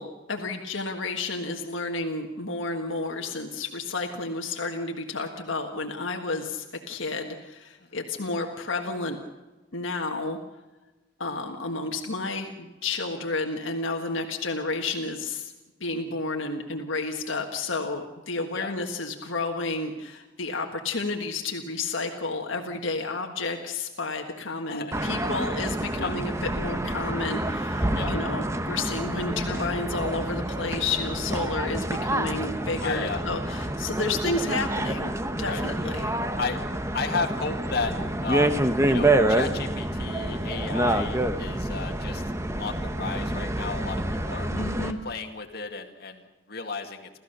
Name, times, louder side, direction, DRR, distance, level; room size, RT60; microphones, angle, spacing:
voice 1, 0.0-9.2 9.7-10.4 11.2-15.5 15.8-35.1 35.4-36.1 44.5-45.0, left 3 dB, 75° left, 3 dB, 1.5 m, -31 dB
voice 2, 24.7-25.1 26.0-26.1 27.9-28.1 29.5-29.7 32.8-33.3 35.4-35.6 36.4-36.6 36.9-38.0 38.2-38.6 38.9-42.3 42.6-44.5 45.0-47.1, left 4 dB, 55° left, 3 dB, 2.1 m, -33 dB
sound 1, 24.9-44.9, right 1 dB, 15° right, 1.0 m, -27 dB
29.5 x 14.0 x 6.7 m, 1.2 s
head